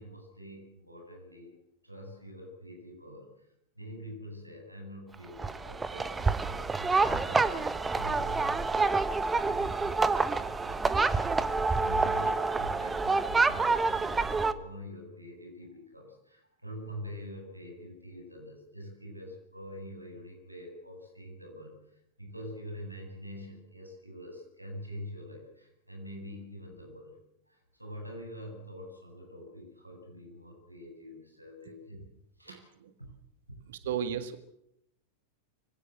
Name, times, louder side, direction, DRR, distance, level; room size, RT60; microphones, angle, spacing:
voice 1, 0.0-1.5 1.8-3.5 3.7-27.1 27.5-32.1 32.4-32.7, equal, 85° right, 2 dB, 7.9 m, -45 dB
sound 1, 5.4-14.5, right 4 dB, 15° right, 1.2 m, -27 dB
voice 2, 33.7-34.4, right 8 dB, 55° right, 12 dB, 1.8 m, -33 dB
24.5 x 17.0 x 8.0 m, 0.76 s
figure-of-eight pair, 90°, 0 cm